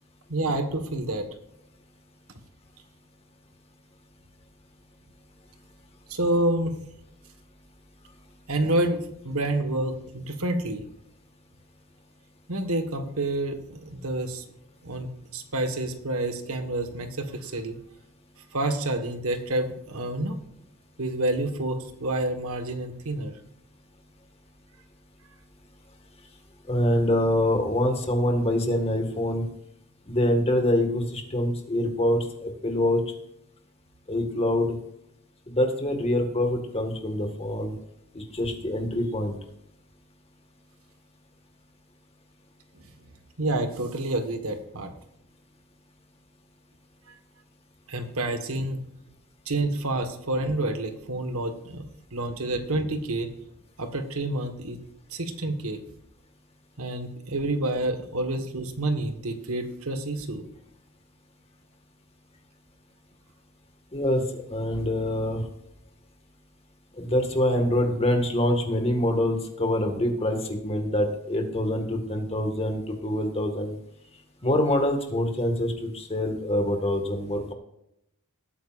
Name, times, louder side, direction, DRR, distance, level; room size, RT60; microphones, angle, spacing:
voice 1, 0.3-1.3 6.1-6.7 8.5-10.8 12.5-14.4 14.8-17.8 18.5-20.4 21.0-23.3 43.4-44.9 47.9-48.9 49.5-53.3 53.8-54.8 55.1-55.8 56.8-60.4, right 2 dB, 75° right, 7 dB, 1.5 m, -28 dB
voice 2, 26.7-29.4 30.1-33.0 34.1-34.8 35.5-37.7 38.2-39.4 63.9-65.4 67.0-73.8 74.4-77.5, left 1 dB, 25° left, 4 dB, 1.8 m, -25 dB
18.5 x 9.1 x 2.5 m, 0.81 s
head